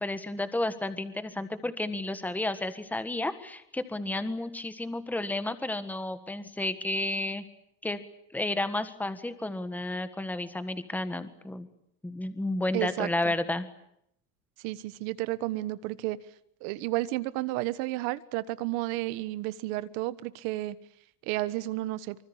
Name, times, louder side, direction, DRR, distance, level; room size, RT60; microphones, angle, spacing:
voice 1, 0.0-7.4 7.8-8.0 8.3-11.7 12.0-13.7, left 2 dB, 5° left, 10 dB, 1.5 m, -32 dB
voice 2, 12.7-13.3 14.6-16.2 16.6-20.8 21.2-22.2, right 17 dB, 85° right, 16 dB, 1.4 m, -32 dB
25.0 x 25.0 x 8.7 m, 0.74 s
cardioid pair, 175°, 35 cm